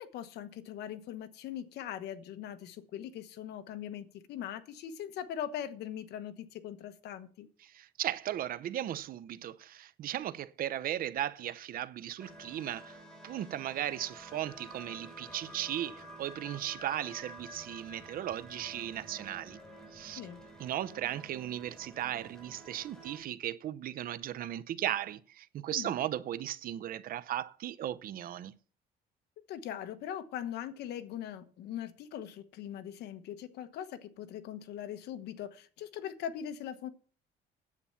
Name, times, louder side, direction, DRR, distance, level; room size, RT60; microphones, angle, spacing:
voice 1, 0.0-7.5 20.2-20.4 25.7-25.9 29.5-36.9, left 10 dB, 75° left, 1.1 m, -41 dB
voice 2, 7.6-13.0 13.2-19.6 19.9-20.2 20.6-28.5, right 12 dB, 60° right, 0.7 m, -36 dB
sound 1, 12.2-23.2, right 1 dB, 5° left, 4.1 m, -50 dB
9.7 x 8.6 x 5.7 m
cardioid pair, 110°, 17 cm